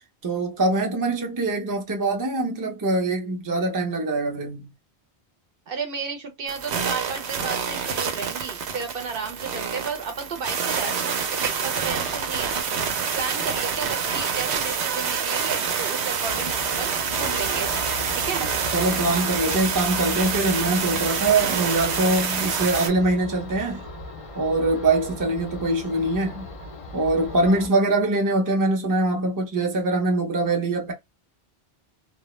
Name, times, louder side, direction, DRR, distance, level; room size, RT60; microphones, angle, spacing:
voice 1, 0.2-4.7 18.7-23.8 24.3-26.5 26.9-30.9, right 2 dB, 25° right, 0.5 m, -23 dB
voice 2, 5.7-12.5 13.1-17.7 18.2-18.5, right 5 dB, 65° right, 0.7 m, -33 dB
sound 1, 6.5-22.9, right 6 dB, 85° right, 0.9 m, -27 dB
sound 2, 16.2-27.7, left 4 dB, 45° left, 0.4 m, -38 dB
2.1 x 2.1 x 2.9 m
omnidirectional pair, 1.1 m